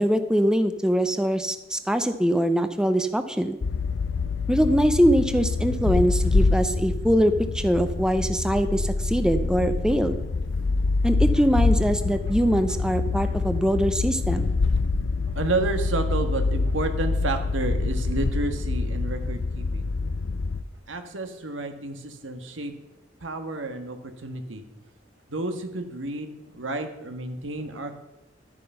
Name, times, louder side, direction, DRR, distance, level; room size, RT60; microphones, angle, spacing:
voice 1, 0.0-3.6 4.5-10.2 11.0-14.5, equal, 5° right, 9 dB, 0.6 m, -23 dB
sound 1, 3.6-20.6, left 3 dB, 70° left, 0.5 m, -26 dB
voice 2, 15.2-19.9 20.9-22.7 23.2-24.6 25.3-27.9, right 2 dB, 85° right, 6 dB, 1.5 m, -31 dB
12.5 x 9.6 x 5.6 m, 0.92 s
head